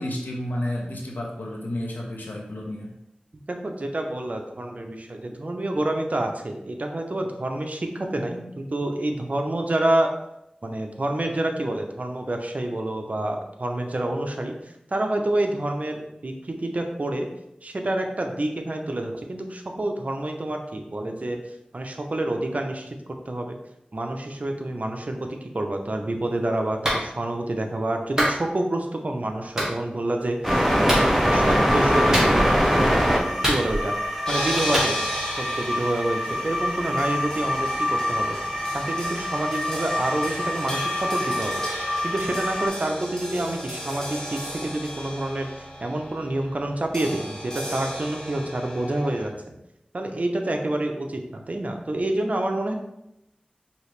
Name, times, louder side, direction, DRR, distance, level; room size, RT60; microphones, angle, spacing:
voice 1, 0.0-2.9, left 1 dB, 90° left, -1 dB, 0.9 m, -31 dB
voice 2, 3.5-10.1 10.6-14.5 14.9-17.3 17.6-21.4 21.7-22.9 23.3-23.6 23.9-25.3 25.5-32.9 33.5-33.9 34.3-35.0 35.4-38.4 38.7-41.6 42.0-45.5 45.8-49.3 49.9-52.7, right 1 dB, 55° right, 3 dB, 0.6 m, -28 dB
Clapping, 26.8-27.0 28.2-28.4 29.6-29.7 30.9-31.1 32.1-32.6 33.4-34.0 34.7-34.9, equal, 20° right, 1.5 m, -24 dB
sound 1, 30.4-42.7, equal, 5° right, 0.9 m, -24 dB
sound 2, 34.3-49.3, equal, 20° left, 1.3 m, -34 dB
4.9 x 2.8 x 3.2 m, 0.85 s
wide cardioid pair, 55°, 3 cm